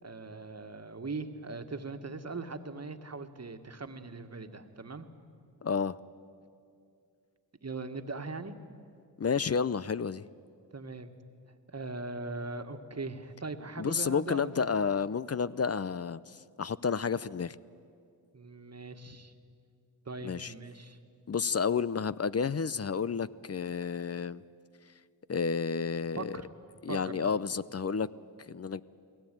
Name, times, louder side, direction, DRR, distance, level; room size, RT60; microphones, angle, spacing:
voice 1, 0.0-5.1 7.6-8.6 10.7-11.1 11.7-14.7 18.3-19.3 20.0-21.0 26.1-26.5 26.9-27.2, right 3 dB, 35° right, 7 dB, 1.7 m, -40 dB
voice 2, 5.6-6.0 9.2-10.2 13.8-17.6 20.2-20.5 21.3-24.4 25.3-26.4 26.8-28.1 28.5-28.8, left 6 dB, 35° left, 17 dB, 0.6 m, -31 dB
21.0 x 17.5 x 9.2 m, 2.4 s
cardioid pair, 45°, 44 cm